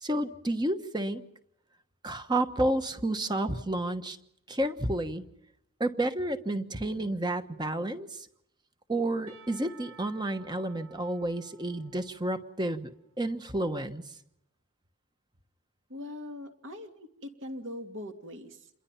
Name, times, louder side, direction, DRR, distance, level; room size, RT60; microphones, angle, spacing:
voice 1, 0.0-1.2 2.0-4.2 4.5-5.2 5.8-8.3 8.9-12.9 13.2-14.0, right 1 dB, 20° right, 9 dB, 1.2 m, -30 dB
Percussion / Church bell, 9.3-13.2, right 7 dB, 75° right, 6.3 m, -56 dB
voice 2, 15.9-18.7, left 1 dB, 60° right, 5 dB, 2.6 m, -41 dB
28.0 x 22.0 x 5.8 m, 0.80 s
head